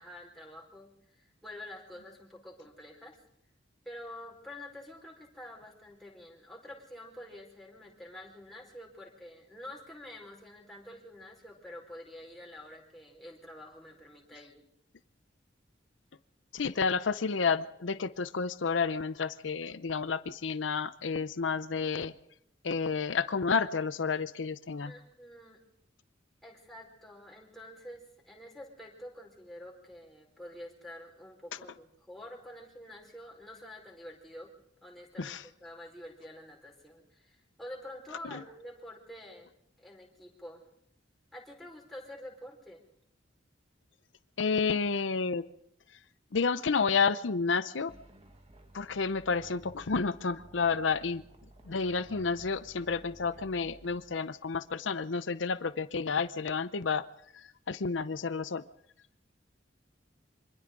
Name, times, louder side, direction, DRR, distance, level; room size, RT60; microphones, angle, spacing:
voice 1, 0.0-3.2 3.8-14.6 24.8-25.6 26.4-34.5 34.8-39.5 39.8-40.6 41.3-42.8, left 1 dB, ahead, -3 dB, 4.8 m, -48 dB
voice 2, 16.5-22.1 22.6-24.9 35.2-35.4 38.3-38.4 44.4-45.5 46.3-47.9 48.7-51.2 51.7-57.0 57.3-58.6, left 5 dB, 80° left, 14 dB, 0.7 m, -30 dB
sound 1, 47.9-54.0, right 1 dB, 35° right, 1.8 m, -55 dB
27.0 x 25.0 x 3.8 m, 0.73 s
head